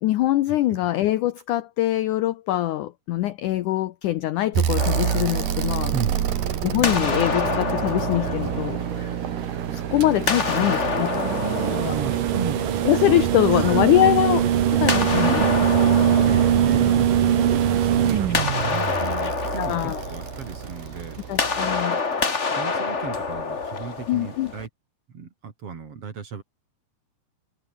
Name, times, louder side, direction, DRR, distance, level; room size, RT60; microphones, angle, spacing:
voice 1, 0.0-5.9 6.6-8.8 9.7-11.3 11.7-11.9 12.9-15.4 19.6-20.0 21.3-22.0 24.1-24.5, left 14 dB, 85° left, 1.7 m, -23 dB
sound 1, 4.6-8.7 10.0-21.2 22.8-22.9, right 9 dB, 60° right, 3.4 m, -23 dB
sound 2, 4.8-6.4 6.8-9.6 10.2-13.1 14.9-17.6 18.0-24.7, left 4 dB, 50° left, 0.8 m, -28 dB
sound 3, 4.9-21.8, right 10 dB, 75° right, 4.3 m, -33 dB
voice 2, 5.9-6.4 10.4-12.9 13.4-13.9 15.1-15.5 16.0-21.2 22.5-24.7 25.1-26.4, right 6 dB, 40° right, 3.1 m, -34 dB
omnidirectional pair, 4.7 m